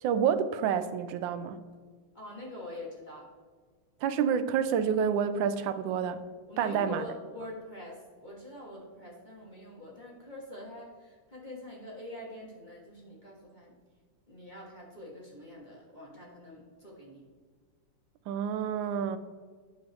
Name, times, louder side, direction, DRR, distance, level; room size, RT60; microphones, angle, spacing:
voice 1, 0.0-1.6 4.0-6.2 6.6-7.0 18.3-19.2, right 7 dB, 80° right, 11 dB, 1.3 m, -28 dB
voice 2, 2.1-3.3 6.5-13.7 14.3-17.2, left 1 dB, 25° left, -4 dB, 1.3 m, -45 dB
8.9 x 7.0 x 3.4 m, 1.6 s
omnidirectional pair, 2.1 m